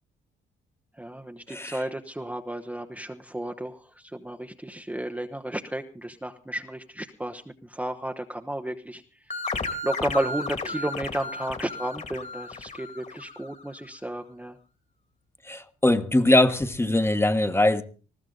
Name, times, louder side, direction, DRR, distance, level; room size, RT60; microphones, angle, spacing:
voice 1, 1.0-9.0 9.5-14.6, right 1 dB, 5° right, 1.0 m, -33 dB
sound 1, 9.3-13.6, left 3 dB, 35° left, 2.2 m, -34 dB
voice 2, 15.5-17.8, left 1 dB, 10° left, 1.3 m, -21 dB
20.0 x 14.5 x 3.9 m
cardioid pair, 90°, 20 cm